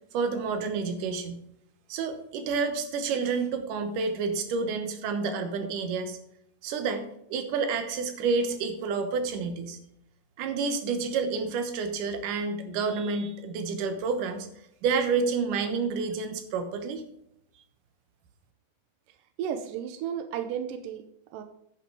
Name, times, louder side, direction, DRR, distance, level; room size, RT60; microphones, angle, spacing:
voice 1, 0.1-1.4 1.9-6.2 6.6-7.0 7.3-9.8 10.4-14.5 14.8-17.0, right 4 dB, 65° right, 7 dB, 2.3 m, -29 dB
voice 2, 19.4-21.0 21.3-21.4, right 8 dB, 85° right, 7 dB, 1.9 m, -33 dB
11.5 x 5.9 x 4.8 m, 0.77 s
omnidirectional pair, 4.6 m